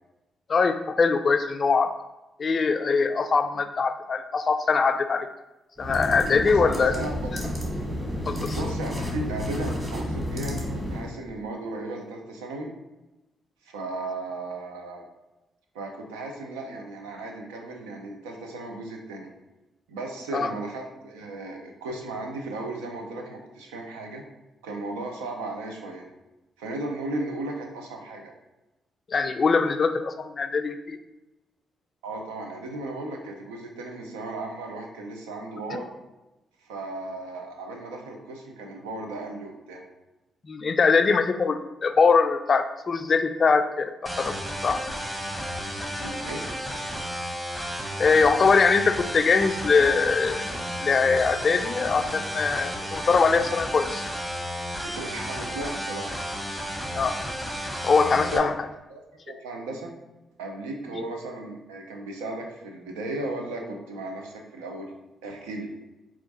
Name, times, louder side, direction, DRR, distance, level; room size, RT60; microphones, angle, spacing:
voice 1, 0.5-1.9 2.4-5.3 5.8-6.9 8.3-8.6 20.3-20.5 29.1-31.0 40.4-44.3 44.6-44.8 48.0-50.5 50.8-54.1 56.9-57.1 57.8-58.5, left 4 dB, 50° left, 9 dB, 0.3 m, -22 dB
sound 1, 5.8-11.1, left 1 dB, 25° right, 1.4 m, -31 dB
voice 2, 6.4-7.4 8.5-12.7 13.6-15.1 15.7-19.3 19.9-24.2 24.6-26.1 26.6-28.3 32.0-35.9 36.6-39.8 46.0-46.5 54.8-56.2 58.2-58.5 58.9-59.0 59.3-59.9 60.4-64.9 65.2-65.7, right 2 dB, 85° right, 2 dB, 0.5 m, -35 dB
sound 2, 44.1-58.4, equal, 10° right, 0.9 m, -33 dB
4.4 x 2.4 x 4.0 m, 1.0 s
hypercardioid pair, 40°, 0 cm